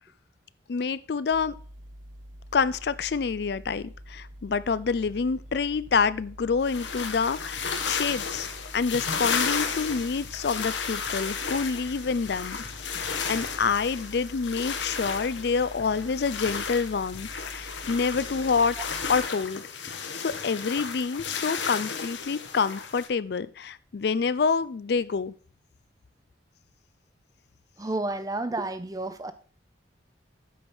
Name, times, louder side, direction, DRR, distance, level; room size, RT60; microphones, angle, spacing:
voice 1, 0.7-1.5 2.5-8.5 8.7-12.6 12.9-18.8 19.1-19.6 20.1-25.3, left 5 dB, 60° left, 0.4 m, -27 dB
sound 1, 1.3-19.3, equal, 90° right, 1.2 m, -46 dB
sound 2, 5.1-5.6 5.9-6.3 7.6-8.6 9.8-10.8 11.1-14.1 15.1-15.2 15.8-16.1 16.5-16.7 17.1-17.3 18.1-19.6 19.9-21.8, left 1 dB, 35° left, 1.2 m, -52 dB
sound 3, 6.7-23.1, left 6 dB, 85° left, 1.2 m, -33 dB
voice 2, 27.8-29.3, right 2 dB, 20° right, 0.6 m, -31 dB
8.5 x 5.4 x 6.1 m
head